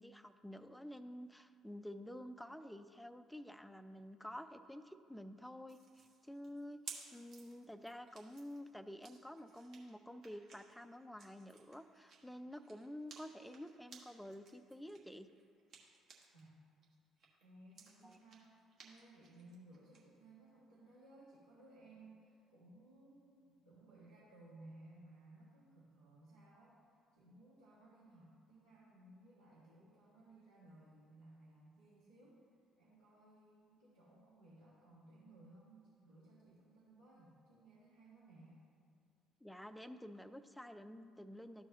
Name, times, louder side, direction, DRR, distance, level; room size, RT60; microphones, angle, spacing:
voice 1, 0.0-15.3 18.0-18.2 39.4-41.7, equal, 5° left, 11 dB, 0.4 m, -50 dB
sound 1, 5.7-16.5 16.8-20.0, right 5 dB, 55° right, 1.2 m, -58 dB
voice 2, 17.4-32.4 32.8-38.6, right 2 dB, 85° right, -13 dB, 1.6 m, -61 dB
13.0 x 4.7 x 2.8 m, 2.2 s
figure-of-eight pair, 50°, 0 cm